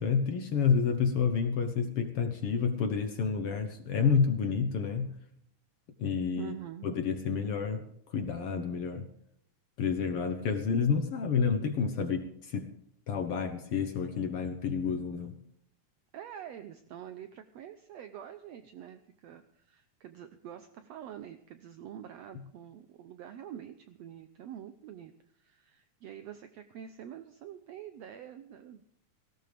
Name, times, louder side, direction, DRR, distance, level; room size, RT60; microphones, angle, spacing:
voice 1, 0.0-5.1 6.0-6.5 6.8-7.8 8.1-9.1 9.8-12.7 13.1-15.4, left 6 dB, 60° left, 7 dB, 1.7 m, -29 dB
voice 2, 6.4-7.0 16.1-28.8, right 10 dB, 70° right, 9 dB, 1.8 m, -46 dB
18.0 x 17.5 x 3.5 m, 0.69 s
omnidirectional pair, 3.5 m